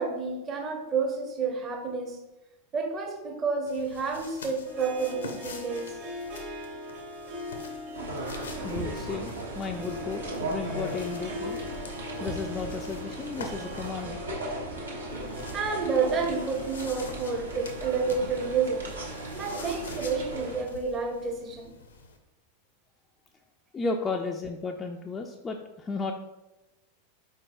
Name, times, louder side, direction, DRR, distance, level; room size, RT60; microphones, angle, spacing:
voice 1, 0.0-2.2 2.7-6.0 15.5-18.9 19.3-21.7, right 5 dB, 25° right, 2 dB, 0.7 m, -30 dB
sound 1, 3.7-14.1 15.1-22.2, left 3 dB, 65° left, 0.5 m, -47 dB
Harp, 4.6-21.1, left 2 dB, 50° right, 1.3 m, -42 dB
sound 2, 7.9-20.6, right 1 dB, 75° right, 0.9 m, -37 dB
voice 2, 8.6-9.3 9.6-11.6 12.2-14.2 23.7-26.1, left 4 dB, 20° left, 1 dB, 0.3 m, -34 dB
4.4 x 4.3 x 2.5 m, 1.0 s
figure-of-eight pair, 90°, 0 cm